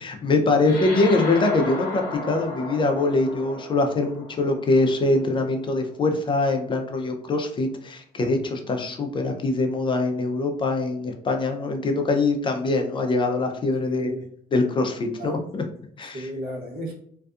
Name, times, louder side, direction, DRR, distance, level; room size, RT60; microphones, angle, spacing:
voice 1, 0.0-14.1 14.5-15.6 16.0-16.3, left 2 dB, 30° left, 4 dB, 0.4 m, -23 dB
sound 1, 0.6-5.4, left 2 dB, 60° left, 0.7 m, -35 dB
voice 2, 13.8-14.3 15.2-15.4 15.8-16.9, equal, 65° right, -2 dB, 0.9 m, -35 dB
2.6 x 2.2 x 2.4 m, 0.63 s
cardioid pair, 110°, 17 cm